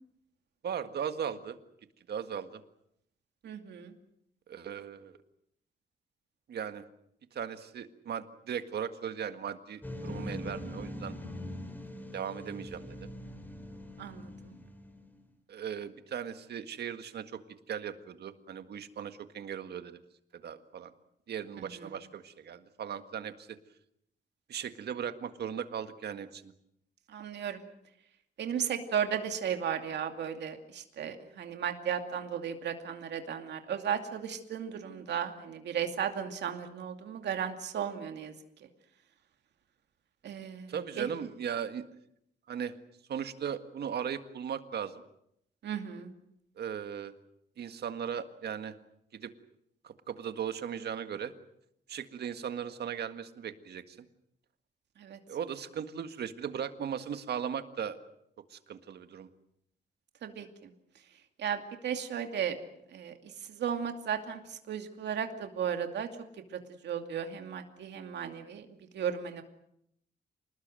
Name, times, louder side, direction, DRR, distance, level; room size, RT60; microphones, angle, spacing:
voice 1, 0.6-1.6 2.1-2.6 4.5-5.2 6.5-6.8 7.3-11.1 12.1-13.1 15.5-17.4 17.7-20.0 20.3-20.9 21.3-23.6 24.5-26.5 40.7-41.8 42.5-42.7 43.1-45.0 46.6-47.1 47.6-48.7 49.1-49.3 49.8-51.3 51.9-54.1 55.3-58.0 58.5-59.3, right 8 dB, 70° right, 9 dB, 1.8 m, -37 dB
voice 2, 3.4-3.9 14.0-14.3 21.6-21.9 27.1-27.6 28.4-38.3 40.2-41.1 45.6-46.1 55.0-55.2 60.2-60.5 61.4-62.6 62.9-63.1 63.5-64.4 64.7-66.1 66.8-68.7 68.9-69.4, right 8 dB, 90° right, 6 dB, 2.5 m, -35 dB
sound 1, 9.8-15.1, left 1 dB, 10° left, 3.2 m, -42 dB
27.5 x 20.0 x 7.7 m, 0.74 s
wide cardioid pair, 145°, 17 cm